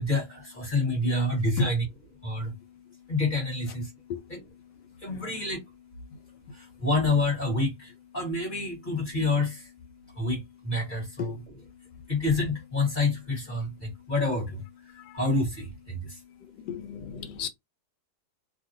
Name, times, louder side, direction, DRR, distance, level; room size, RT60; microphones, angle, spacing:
voice 1, 0.0-1.8 2.1-16.7 16.9-17.5, left 2 dB, 30° left, 1.3 m, -29 dB
voice 2, 16.6-17.5, left 5 dB, 85° left, 1.3 m, -33 dB
3.0 x 2.5 x 2.6 m
omnidirectional pair, 1.9 m